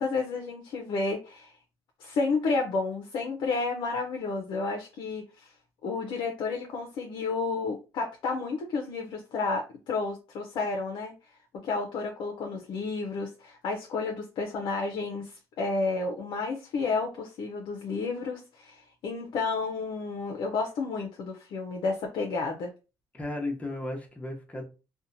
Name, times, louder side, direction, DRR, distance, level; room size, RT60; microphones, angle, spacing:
voice 1, 0.0-1.5 2.0-5.5 5.8-11.1 11.6-22.7, left 3 dB, 65° left, 0.5 m, -31 dB
voice 2, 23.1-24.6, left 2 dB, 15° left, 0.7 m, -34 dB
2.7 x 2.1 x 2.6 m
cardioid pair, 105°, 9 cm